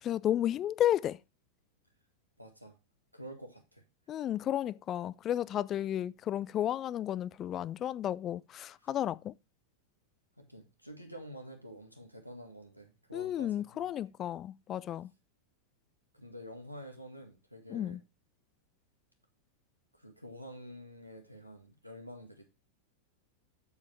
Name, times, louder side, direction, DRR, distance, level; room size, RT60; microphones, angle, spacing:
voice 1, 0.0-1.2 4.1-9.3 13.1-15.1 17.7-18.0, left 11 dB, 30° left, 0.3 m, -32 dB
voice 2, 2.4-2.8 3.1-3.8 8.8-8.9 10.4-13.5 13.8-13.9 16.1-18.0 19.9-22.4, equal, 90° right, 1.9 m, -48 dB
7.8 x 7.3 x 3.3 m
figure-of-eight pair, 90°, 0 cm